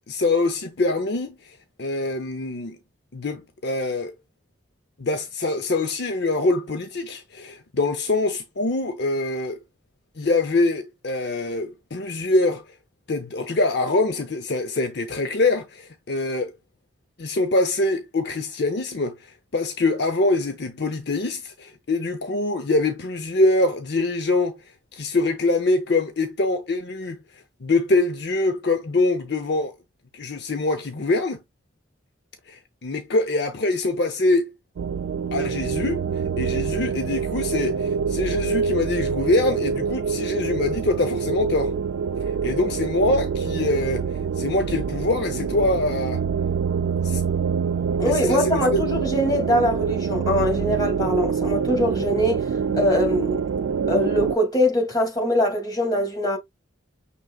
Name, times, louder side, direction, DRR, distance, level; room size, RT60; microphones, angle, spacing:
voice 1, 0.1-2.8 3.1-4.1 5.0-9.6 10.2-12.6 13.1-16.6 17.2-24.6 24.9-27.2 27.6-29.7 30.1-31.4 32.5-34.5 35.3-36.1 36.4-41.7 42.2-44.1 44.4-46.2 47.0-47.2 48.1-48.8, left 2 dB, 60° left, 0.7 m, -24 dB
sound 1, 34.8-54.4, right 6 dB, 90° right, 0.3 m, -25 dB
voice 2, 48.0-52.4 52.7-53.4 53.9-56.4, left 1 dB, 20° left, 2.4 m, -22 dB
6.2 x 3.3 x 2.3 m
head